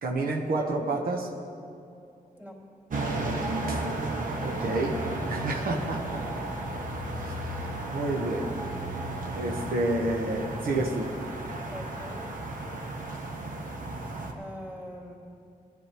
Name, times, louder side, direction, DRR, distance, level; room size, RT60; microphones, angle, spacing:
voice 1, 0.0-1.3 3.7-3.8 4.4-5.0 5.3-6.4 7.2-8.5 9.3-11.1, right 2 dB, 90° right, 0 dB, 1.0 m, -30 dB
sound 1, 2.9-14.3, right 2 dB, 65° right, 1.3 m, -34 dB
voice 2, 11.7-12.4 14.3-15.2, equal, 15° right, -3 dB, 2.9 m, -43 dB
17.5 x 12.0 x 3.0 m, 2.5 s
cardioid pair, 90°, 15 cm